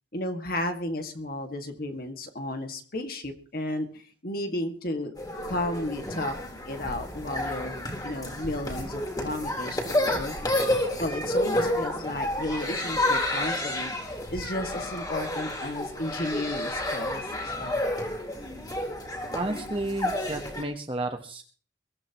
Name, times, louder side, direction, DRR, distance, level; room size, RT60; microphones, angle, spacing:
voice 1, 0.1-5.1 5.4-6.3 6.7-10.4 11.0-17.2 17.6-17.9, left 1 dB, 50° left, 5 dB, 2.0 m, -33 dB
sound 1, 5.2-20.6, left 1 dB, 20° left, 3.9 m, -30 dB
voice 2, 19.3-21.4, right 2 dB, 30° right, 4 dB, 1.1 m, -32 dB
23.0 x 15.0 x 3.0 m, 0.43 s
head